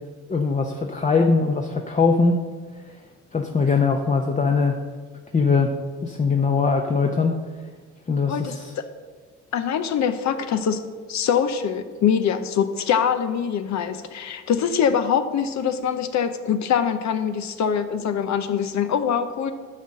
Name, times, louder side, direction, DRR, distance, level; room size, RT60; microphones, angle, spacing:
voice 1, 0.3-2.4 3.3-4.8 5.3-5.7 6.0-7.4 8.1-8.7, left 4 dB, 25° left, 3 dB, 0.7 m, -21 dB
voice 2, 9.5-10.8 11.1-19.5, left 7 dB, 65° left, 9 dB, 0.7 m, -23 dB
11.0 x 4.1 x 7.6 m, 1.6 s
cardioid pair, 90°, 30 cm